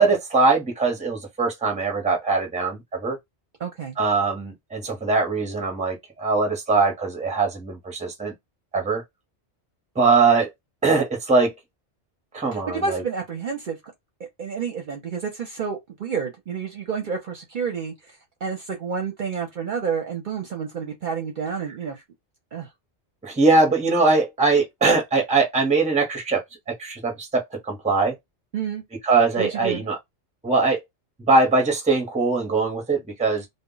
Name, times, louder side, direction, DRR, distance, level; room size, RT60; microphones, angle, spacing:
voice 1, 0.0-3.2 4.0-8.3 8.7-9.0 10.0-10.5 10.8-11.5 12.3-13.0 23.2-28.2 29.0-30.0 30.4-30.8 31.3-33.5, right 3 dB, 10° right, 0.6 m, -21 dB
voice 2, 3.6-4.0 12.5-13.8 14.2-22.0 22.5-22.7 28.5-28.8 29.4-29.8, right 6 dB, 55° right, 0.7 m, -30 dB
2.1 x 2.1 x 3.7 m
omnidirectional pair, 1.2 m